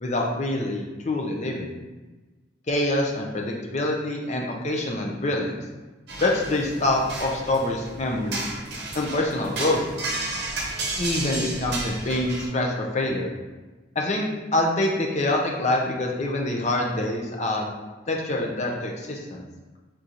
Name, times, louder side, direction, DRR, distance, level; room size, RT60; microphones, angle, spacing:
voice 1, 0.0-1.8 2.7-5.6 6.2-8.4 8.9-9.8 11.0-13.3 14.0-17.7 18.1-19.4, left 1 dB, 35° left, 0 dB, 0.6 m, -25 dB
sound 1, 6.1-12.5, right 2 dB, 55° right, 0.8 m, -32 dB
3.7 x 2.9 x 3.9 m, 1.2 s
head